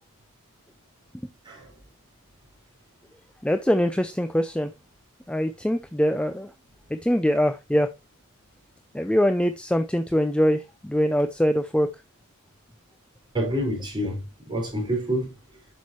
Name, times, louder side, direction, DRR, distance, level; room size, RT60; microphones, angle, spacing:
voice 1, 3.4-4.7 5.3-6.5 6.9-7.9 8.9-11.9, equal, 5° left, 0.4 m, -23 dB
voice 2, 13.3-15.4, equal, 20° right, 4.7 m, -28 dB
8.4 x 6.4 x 3.0 m
head